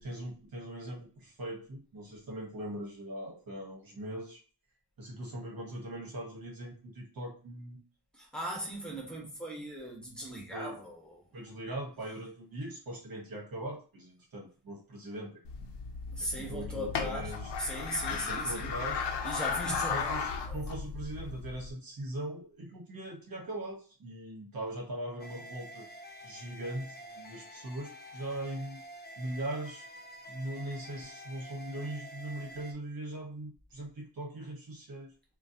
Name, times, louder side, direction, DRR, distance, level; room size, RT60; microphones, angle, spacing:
voice 1, 0.0-4.4 5.0-7.8 10.5-10.8 11.3-15.7 16.2-17.5 18.1-19.0 19.6-25.8 26.2-28.8 29.2-29.8 30.3-35.1, right 1 dB, 60° right, 1.2 m, -40 dB
voice 2, 8.1-11.2 16.1-17.3 17.6-18.7 19.2-20.6, equal, ahead, 1.3 m, -38 dB
sound 1, 15.4-21.7, left 5 dB, 90° left, 0.7 m, -35 dB
sound 2, 25.2-32.7, equal, 25° left, 0.5 m, -48 dB
3.8 x 2.2 x 2.8 m
cardioid pair, 70°, 40 cm